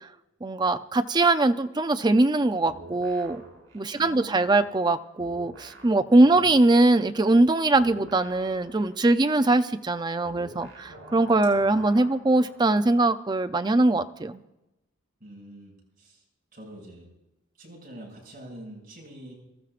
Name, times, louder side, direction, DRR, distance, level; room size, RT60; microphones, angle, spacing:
voice 1, 0.4-3.4 3.7-14.4, right 2 dB, 20° right, 9 dB, 0.5 m, -22 dB
sound 1, 2.7-4.9 5.2-12.8, right 1 dB, 85° right, 5.4 m, -48 dB
voice 2, 3.9-4.5 6.2-6.5 11.4-11.8 15.2-15.7 16.0-16.2 16.5-17.1 17.6-19.3, right 1 dB, 45° right, -3 dB, 6.3 m, -44 dB
25.0 x 14.0 x 2.5 m, 0.94 s
head